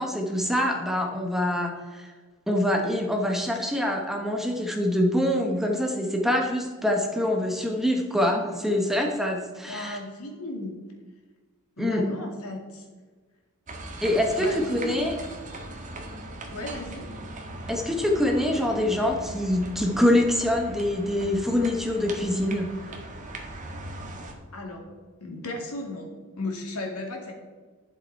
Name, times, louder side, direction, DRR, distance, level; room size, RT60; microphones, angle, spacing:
voice 1, 0.0-2.1 2.5-10.0 11.8-12.0 14.0-15.1 17.7-22.7, left 1 dB, ahead, 1 dB, 1.1 m, -25 dB
voice 2, 9.7-10.9 11.8-12.9 14.4-15.0 16.5-17.1 24.5-24.9 25.2-27.3, left 2 dB, 80° left, 1 dB, 2.2 m, -35 dB
sound 1, 13.7-24.3, right 1 dB, 35° right, 1.5 m, -39 dB
11.0 x 7.6 x 4.6 m, 1.4 s
head